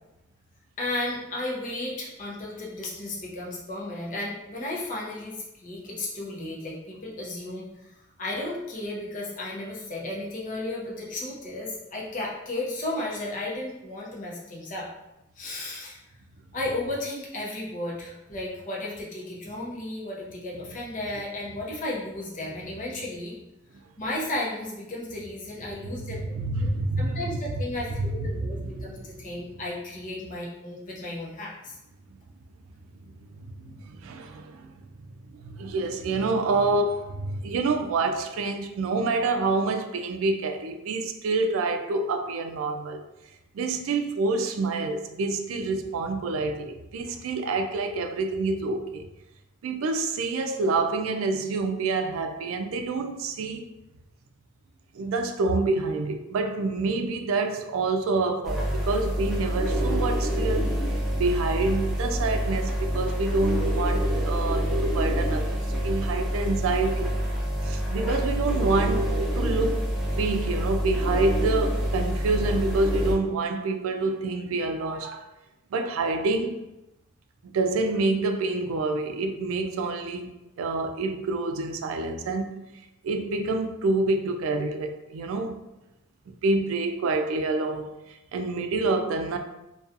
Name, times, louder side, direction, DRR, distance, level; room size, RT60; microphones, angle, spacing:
voice 1, 0.8-14.9 15.4-16.0 16.5-23.4 24.0-26.7 27.0-31.8, left 2 dB, 40° left, 0.6 m, -34 dB
voice 2, 26.0-27.4 28.0-29.3 33.6-34.8 35.4-43.0 43.5-49.1 49.6-53.7 54.9-60.8 61.1-67.2 67.6-75.3 75.7-76.6 77.4-80.3 80.6-82.6 83.0-85.6 86.3-89.4, right 3 dB, 90° right, 0.3 m, -27 dB
sound 1, 58.4-73.1, equal, ahead, 0.4 m, -27 dB
2.6 x 2.3 x 2.4 m
head